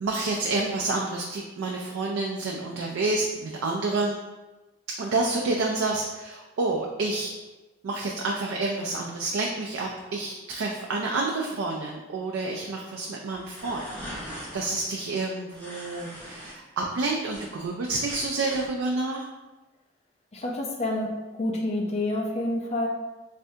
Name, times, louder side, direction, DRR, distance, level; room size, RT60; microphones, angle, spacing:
voice 1, 0.0-4.2 5.0-7.3 7.8-13.8 14.1-19.2, right 3 dB, 75° right, 0 dB, 0.4 m, -29 dB
sound 1, 13.3-14.7 15.5-16.5 16.9-18.7, equal, 10° left, 1.0 m, -41 dB
voice 2, 20.3-21.1 21.4-22.9, left 1 dB, 30° left, -1 dB, 0.5 m, -28 dB
3.4 x 3.3 x 2.7 m, 1.2 s
head